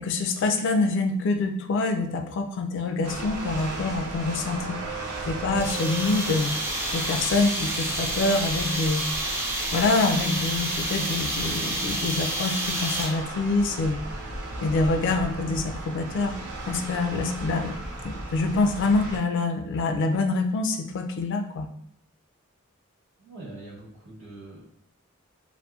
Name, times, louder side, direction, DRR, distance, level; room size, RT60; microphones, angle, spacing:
voice 1, 0.0-4.8 5.3-6.5 6.9-9.0 9.7-14.0 14.6-16.3 16.7-17.8 18.3-21.7, left 3 dB, 60° left, 6 dB, 0.3 m, -25 dB
sound 1, 3.0-19.2, right 2 dB, 90° right, 0.5 m, -36 dB
sound 2, 5.6-13.3, right 1 dB, 10° right, 0.4 m, -29 dB
voice 2, 23.2-24.6, right 2 dB, 65° right, -5 dB, 0.9 m, -43 dB
2.6 x 2.1 x 2.3 m, 0.70 s
head